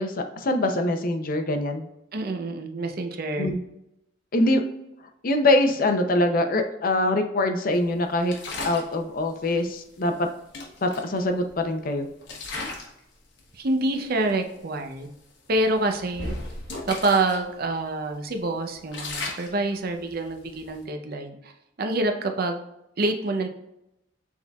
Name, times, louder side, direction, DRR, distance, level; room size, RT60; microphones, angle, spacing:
voice 1, 0.0-1.9 3.4-3.6 4.3-4.6 5.2-8.3 8.6-10.3 10.8-12.1, left 1 dB, 50° left, 6 dB, 0.6 m, -23 dB
voice 2, 2.1-3.5 13.5-15.1 15.5-16.3 16.9-21.5 21.8-22.6 23.0-23.5, right 2 dB, 55° right, 5 dB, 0.6 m, -26 dB
sound 1, 8.3-8.9 10.1-10.2 10.5-11.7 12.2-13.0 13.4-13.6 14.3-14.4 14.8-15.0 15.5-17.4 17.8-17.9 18.3-20.8, left 2 dB, 65° left, 1.1 m, -36 dB
6.2 x 3.7 x 2.3 m, 0.85 s
head